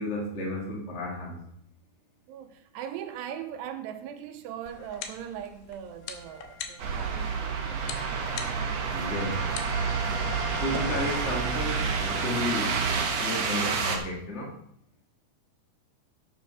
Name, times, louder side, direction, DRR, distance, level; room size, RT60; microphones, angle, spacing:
voice 1, 0.0-1.4 8.9-9.5 10.6-12.8 13.1-14.5, left 1 dB, 60° left, 0.7 m, -33 dB
voice 2, 2.3-8.3 8.9-9.5, right 9 dB, 80° right, 2.9 m, -40 dB
sound 1, 4.7-11.2, left 7 dB, 80° left, 2.9 m, -44 dB
Wind instrument woodwind instrument, 6.0-13.8, left 1 dB, 45° left, 4.8 m, -44 dB
sound 2, 6.8-14.0, right 5 dB, 65° right, 1.7 m, -29 dB
11.5 x 8.2 x 4.2 m
omnidirectional pair, 4.9 m